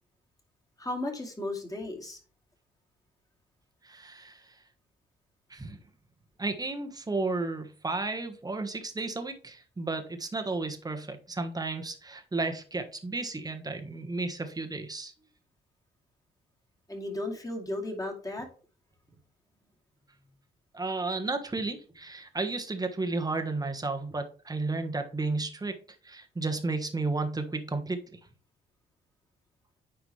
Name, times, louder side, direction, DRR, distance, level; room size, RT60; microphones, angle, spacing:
voice 1, 0.8-2.2 16.9-18.5, left 2 dB, 15° left, 2 dB, 2.5 m, -35 dB
voice 2, 3.8-4.5 5.5-5.8 6.4-15.1 20.7-25.8 26.0-28.2, right 3 dB, 20° right, 6 dB, 1.4 m, -33 dB
9.4 x 4.7 x 3.3 m, 0.38 s
cardioid pair, 90°, 20 cm